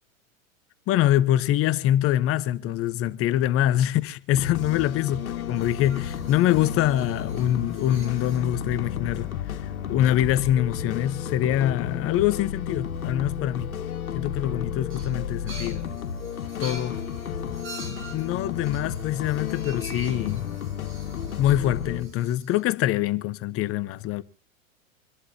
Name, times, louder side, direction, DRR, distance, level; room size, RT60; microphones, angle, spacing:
voice 1, 0.9-13.7 14.1-15.8 16.6-17.0 17.8-20.5 21.4-24.2, left 12 dB, 35° left, 0.9 m, -24 dB
sound 1, 4.3-22.0, left 8 dB, 85° left, 1.9 m, -32 dB
sound 2, 5.6-8.5 9.7-9.8 10.1-10.4 11.1-11.2 14.9-22.6, right 2 dB, 30° right, 5.7 m, -46 dB
27.0 x 11.5 x 2.8 m
hypercardioid pair, 105°, 41 cm